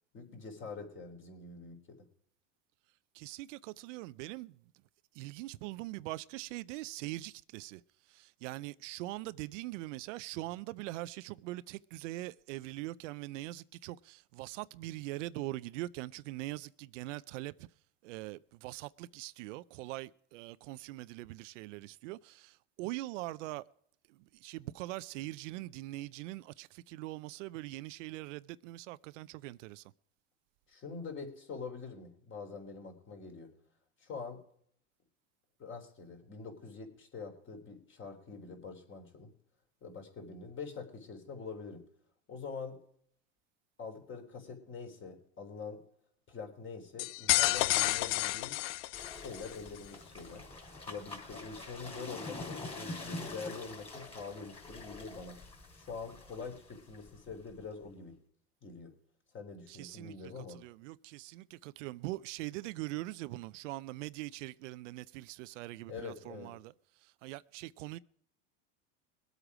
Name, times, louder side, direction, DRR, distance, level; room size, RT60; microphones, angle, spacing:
voice 1, 0.1-2.0 30.7-33.5 34.0-34.4 35.6-39.3 39.8-41.8 42.3-42.8 43.8-45.8 46.3-48.6 49.1-50.4 50.9-55.4 55.7-58.1 58.6-58.9 59.3-60.6 65.9-66.5, left 5 dB, 30° left, 3.6 m, -45 dB
voice 2, 3.1-4.6 5.1-7.8 8.1-17.7 18.0-23.6 24.1-29.8 59.7-66.7 67.0-68.0, right 18 dB, 70° right, 0.6 m, -42 dB
sound 1, 47.0-49.5, left 19 dB, 65° left, 0.5 m, -30 dB
sound 2, 48.9-57.8, left 2 dB, 15° left, 3.8 m, -46 dB
21.5 x 8.2 x 4.9 m
supercardioid pair, 115°, 38 cm